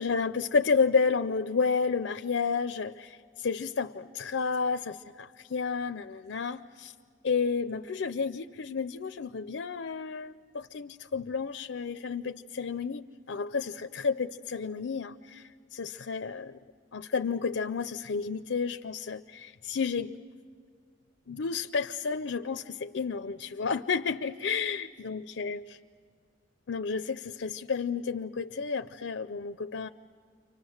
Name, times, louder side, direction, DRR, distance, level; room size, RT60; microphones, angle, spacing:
voice 1, 0.0-6.9 7.2-16.6 16.9-20.1 21.3-25.8 26.7-29.9, left 5 dB, 80° left, 9 dB, 0.5 m, -31 dB
29.5 x 25.0 x 6.4 m, 2.1 s
head